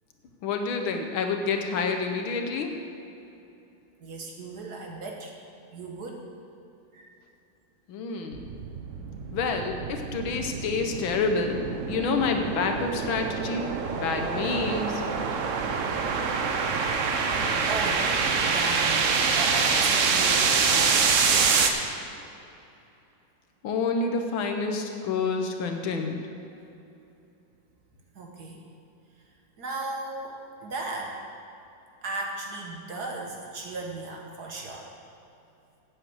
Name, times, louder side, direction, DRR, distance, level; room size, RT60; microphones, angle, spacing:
voice 1, 0.4-2.7 7.9-8.5 9.3-15.0 23.6-26.2, left 4 dB, 75° left, 4 dB, 1.6 m, -28 dB
voice 2, 4.0-5.3 5.7-6.2 6.9-7.1 17.3-18.1 18.4-21.7 28.1-28.6 29.6-31.2 32.0-34.9, right 3 dB, 55° right, 0 dB, 1.6 m, -36 dB
sound 1, 8.3-21.7, right 5 dB, 70° right, 0.7 m, -26 dB
8.2 x 7.8 x 7.9 m, 2.8 s
omnidirectional pair, 2.3 m